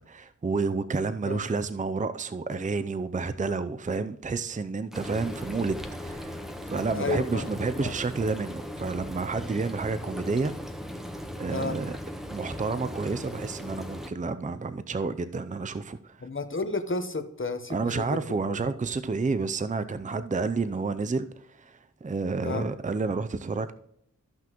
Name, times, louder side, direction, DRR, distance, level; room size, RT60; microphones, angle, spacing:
voice 1, 0.1-6.4 6.7-10.5 11.4-11.9 12.3-16.2 17.7-23.7, right 4 dB, 25° right, 0.5 m, -30 dB
Frying (food), 4.9-14.1, equal, ahead, 1.1 m, -38 dB
voice 2, 7.0-7.9 11.5-11.8 16.2-18.2 18.5-18.6 22.4-22.6, left 3 dB, 40° left, 1.0 m, -32 dB
13.5 x 5.9 x 3.0 m
wide cardioid pair, 45°, 32 cm